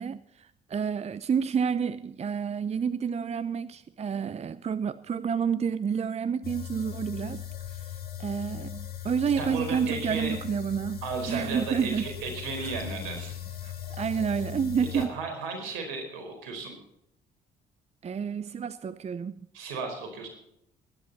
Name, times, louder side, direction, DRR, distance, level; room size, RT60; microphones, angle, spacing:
voice 1, 0.0-7.4 8.2-11.0 11.3-12.1 12.6-12.7 13.6-15.1 18.0-19.3, right 7 dB, 30° right, 0.6 m, -29 dB
sound 1, 6.4-15.1, left 10 dB, 50° left, 3.5 m, -39 dB
voice 2, 9.4-10.4 11.0-13.3 14.9-16.7 19.5-20.3, right 4 dB, 75° right, 4.6 m, -34 dB
21.0 x 10.5 x 4.1 m
hypercardioid pair, 50°, 21 cm